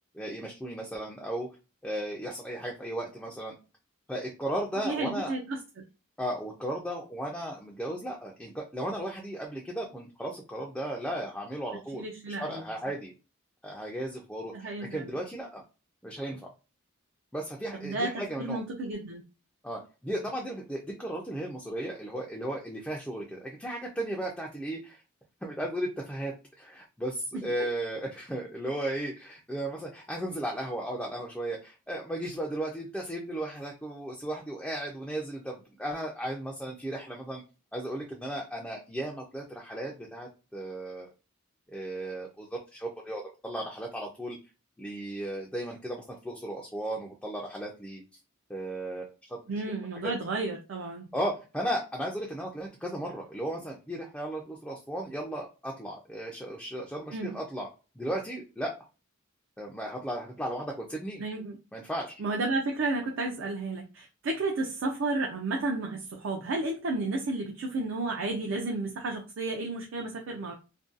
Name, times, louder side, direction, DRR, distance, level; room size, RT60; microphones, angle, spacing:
voice 1, 0.1-1.5 1.8-3.6 4.1-5.3 6.2-13.1 13.6-15.6 16.0-16.4 17.3-18.6 19.6-25.0 25.4-37.4 37.7-41.1 41.7-44.4 44.8-48.0 48.5-49.5 50.0-50.1 51.1-57.7 58.0-58.8 59.6-61.2 61.7-62.1, right 1 dB, 5° left, -2 dB, 0.3 m, -35 dB
voice 2, 4.8-5.6 11.9-12.6 14.5-15.1 17.8-19.2 27.3-27.5 49.5-51.1 57.1-57.4 61.2-61.6 62.2-70.5, right 2 dB, 70° right, 0 dB, 0.4 m, -32 dB
2.6 x 2.2 x 2.4 m, 0.31 s
head